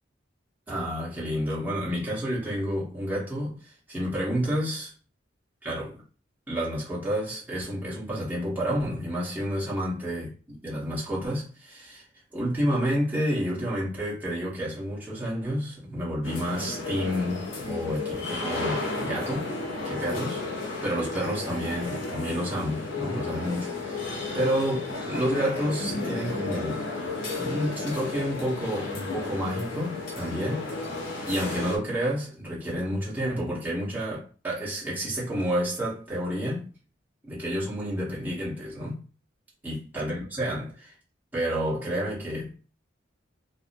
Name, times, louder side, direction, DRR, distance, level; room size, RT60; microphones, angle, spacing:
voice 1, 0.7-3.6 3.9-4.9 5.6-6.0 6.5-12.0 12.3-19.5 19.8-20.4 20.8-26.9 27.3-30.6 31.3-36.7 37.3-39.0 39.6-40.9 41.3-42.6, equal, 10° right, 1.0 m, -30 dB
sound 1, 16.2-31.8, left 3 dB, 85° left, 0.6 m, -33 dB
2.6 x 2.0 x 2.6 m
head